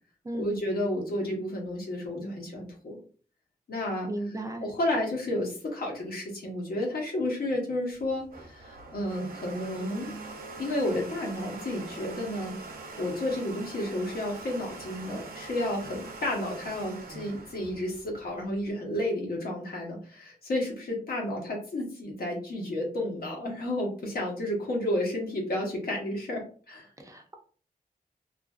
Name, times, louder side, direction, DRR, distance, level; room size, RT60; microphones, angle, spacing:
voice 1, 0.3-3.0 3.7-4.1 4.6-10.1 10.6-12.6 13.0-26.9, left 1 dB, 85° left, -1 dB, 1.0 m, -31 dB
voice 2, 4.1-4.6 27.0-27.4, right 1 dB, 20° right, 4 dB, 0.3 m, -35 dB
Domestic sounds home sounds, 7.9-18.6, right 3 dB, 75° right, 0.5 m, -43 dB
2.6 x 2.5 x 2.3 m, 0.42 s
wide cardioid pair, 180°, 15 cm